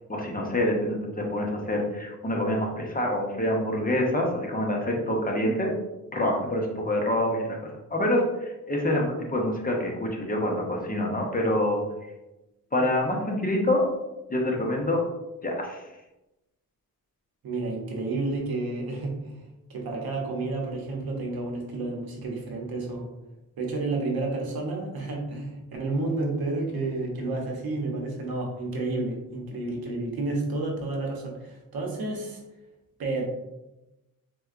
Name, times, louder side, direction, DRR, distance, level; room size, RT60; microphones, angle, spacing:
voice 1, 0.1-5.7 6.1-7.6 7.9-11.8 12.7-13.9 14.3-15.0 15.4-15.8, left 1 dB, 25° left, 0 dB, 0.7 m, -26 dB
voice 2, 17.4-19.4 19.7-23.1 23.6-32.4 33.0-33.2, right 2 dB, 85° right, 0 dB, 0.8 m, -30 dB
4.2 x 2.2 x 2.4 m, 0.99 s
cardioid pair, 85°, 35 cm